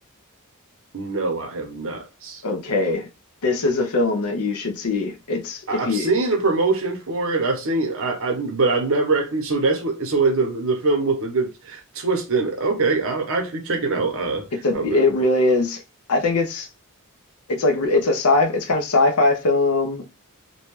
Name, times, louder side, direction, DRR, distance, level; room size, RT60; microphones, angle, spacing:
voice 1, 0.9-2.4 5.7-14.5 14.7-15.1, right 3 dB, 65° right, 0.8 m, -23 dB
voice 2, 2.4-3.1 3.4-6.1 14.6-15.8 16.1-16.7 17.5-20.1, left 2 dB, 80° left, 0.7 m, -21 dB
2.7 x 2.2 x 3.1 m
head